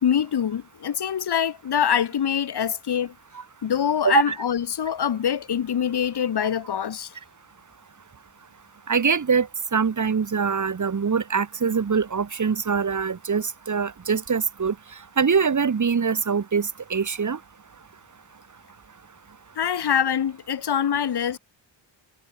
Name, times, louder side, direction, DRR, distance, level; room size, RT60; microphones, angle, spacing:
voice 1, 0.0-3.1 3.6-7.1 19.6-21.4, left 8 dB, 55° left, 2.8 m, -24 dB
voice 2, 4.0-4.3 8.9-14.7 15.2-17.4, right 6 dB, 40° right, 6.1 m, -23 dB
wide cardioid pair, 155°, 46 cm